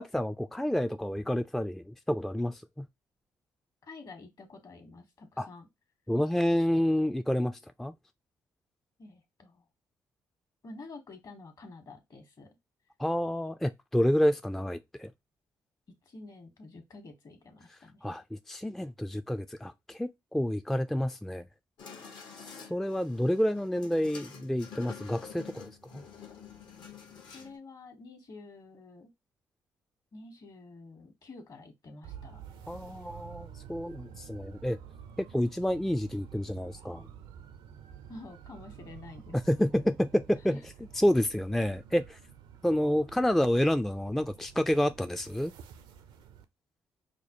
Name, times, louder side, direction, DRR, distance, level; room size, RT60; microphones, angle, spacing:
voice 1, 0.0-2.9 5.4-5.5 6.1-7.9 13.0-15.1 18.0-21.4 22.4-26.0 32.7-34.8 35.3-37.0 39.5-40.6 41.0-42.2 42.6-45.5, equal, 5° left, 0.3 m, -29 dB
voice 2, 3.8-5.7 9.0-9.6 10.6-12.5 16.0-18.0 27.3-29.1 30.1-32.4 38.1-39.4 40.4-40.6 42.7-42.9, left 3 dB, 50° left, 1.3 m, -49 dB
sound 1, 21.8-27.6, left 6 dB, 70° left, 1.0 m, -48 dB
sound 2, 32.0-46.4, right 8 dB, 80° right, 0.5 m, -50 dB
4.9 x 2.1 x 2.9 m
supercardioid pair, 60°, 8 cm